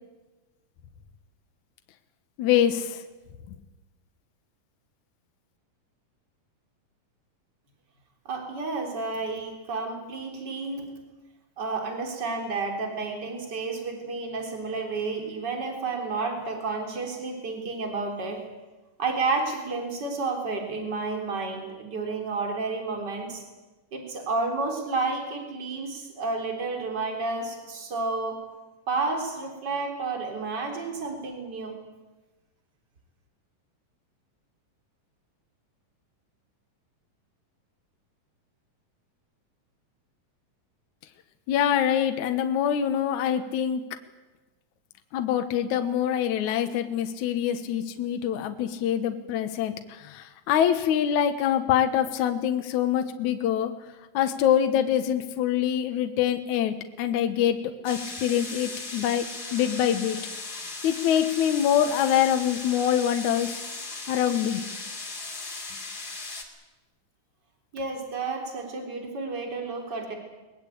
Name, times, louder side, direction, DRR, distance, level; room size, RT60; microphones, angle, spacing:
voice 1, 2.4-3.0 3.5-3.6 41.5-43.8 45.1-53.7 54.1-57.6 57.8-59.3 59.5-60.2 60.8-63.6 64.1-64.6, left 10 dB, 65° left, 7 dB, 2.4 m, -25 dB
voice 2, 8.3-10.9 11.6-18.4 19.0-23.4 23.9-28.4 28.9-31.8 67.7-70.2, right 3 dB, 30° right, 2 dB, 4.1 m, -31 dB
sound 1, 57.8-66.4, left 3 dB, 30° left, 3.1 m, -37 dB
22.0 x 21.0 x 8.6 m, 1.2 s
omnidirectional pair, 4.1 m